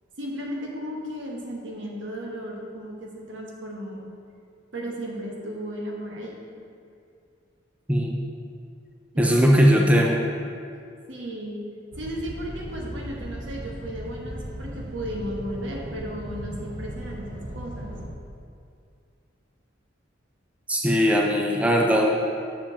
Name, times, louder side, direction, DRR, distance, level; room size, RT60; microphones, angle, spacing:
voice 1, 0.2-4.1 4.7-6.4 9.1-9.4 11.1-11.6 12.0-17.9, equal, 70° right, -2 dB, 1.3 m, -35 dB
voice 2, 7.9-8.2 9.2-10.2 20.7-22.1, equal, 5° right, -1 dB, 0.5 m, -19 dB
sound 1, 11.9-18.1, right 1 dB, 50° right, 0.9 m, -37 dB
7.0 x 5.1 x 5.0 m, 2.4 s
head